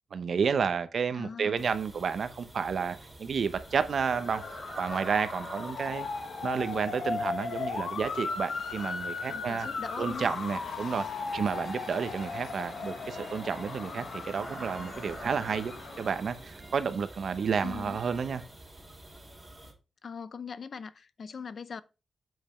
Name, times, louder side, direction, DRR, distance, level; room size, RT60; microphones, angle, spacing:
voice 1, 0.1-4.4 4.8-6.1 6.4-9.7 10.0-18.4, right 6 dB, 65° right, 0.9 m, -31 dB
voice 2, 1.1-1.6 9.3-10.3 17.6-18.0 20.0-21.8, left 6 dB, 55° left, 0.5 m, -41 dB
sound 1, 1.6-19.7, right 2 dB, 15° right, 3.2 m, -48 dB
Motor vehicle (road) / Siren, 3.7-16.4, left 4 dB, 75° left, 1.3 m, -37 dB
sound 2, 11.2-18.5, right 3 dB, 35° right, 1.9 m, -51 dB
7.7 x 5.2 x 4.4 m
wide cardioid pair, 115°, 0 cm